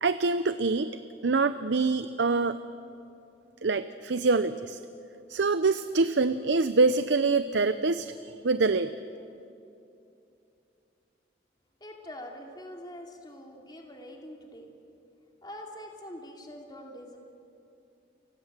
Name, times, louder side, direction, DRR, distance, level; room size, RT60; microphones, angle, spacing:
voice 1, 0.0-0.9 1.2-2.6 3.6-4.8 5.3-8.9, right 3 dB, 80° right, 12 dB, 0.7 m, -25 dB
voice 2, 11.8-14.7 15.4-17.2, left 1 dB, 25° left, 1 dB, 2.7 m, -44 dB
29.5 x 24.5 x 7.4 m, 2.8 s
head